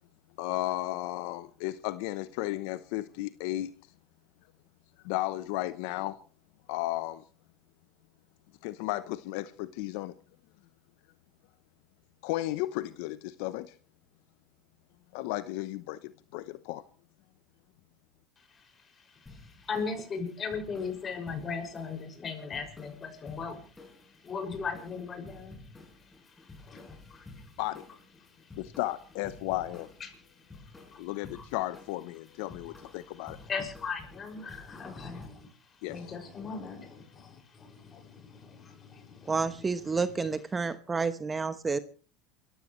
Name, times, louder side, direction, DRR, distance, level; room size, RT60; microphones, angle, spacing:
voice 1, 0.4-3.7 5.0-6.2 6.7-7.2 8.6-10.1 12.2-13.7 15.1-16.0 16.3-16.8 27.6-27.8 28.6-29.9 31.0-33.4 35.8-36.0, left 17 dB, 70° left, 0.8 m, -34 dB
voice 2, 18.4-27.6 28.2-28.6 30.0-31.5 32.5-40.3, left 5 dB, 30° left, 6.0 m, -40 dB
sound 1, 19.3-35.3, left 3 dB, 15° left, 6.0 m, -52 dB
voice 3, 39.3-41.8, right 4 dB, 20° right, 1.0 m, -30 dB
28.5 x 14.5 x 3.2 m
supercardioid pair, 110°, 0 cm